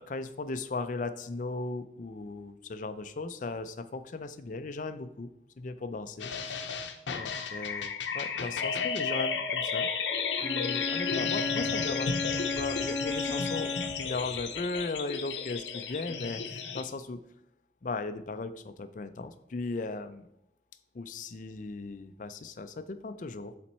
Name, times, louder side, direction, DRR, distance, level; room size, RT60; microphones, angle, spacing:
voice 1, 0.0-5.3 5.6-6.6 7.1-9.9 10.3-12.1 12.5-17.2 17.8-20.3 20.9-23.6, left 3 dB, 45° left, 11 dB, 0.4 m, -37 dB
sound 1, 6.2-16.8, left 6 dB, 85° left, 0.7 m, -33 dB
Bowed string instrument, 10.4-14.2, left 3 dB, 10° left, 1.2 m, -34 dB
7.2 x 4.3 x 4.2 m, 0.84 s
head